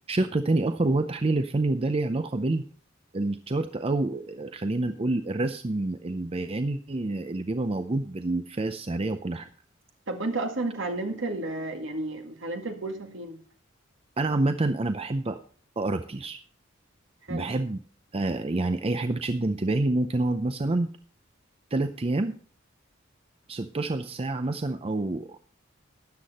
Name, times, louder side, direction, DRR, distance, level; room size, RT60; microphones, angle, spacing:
voice 1, 0.1-2.6 3.1-9.5 14.2-15.4 15.8-16.4 17.3-17.8 18.1-20.9 21.7-22.4 23.5-25.4, right 2 dB, 30° right, 9 dB, 0.5 m, -27 dB
voice 2, 10.1-13.4 17.3-17.5, right 2 dB, 65° right, 5 dB, 1.9 m, -32 dB
13.0 x 9.5 x 4.2 m, 0.44 s
head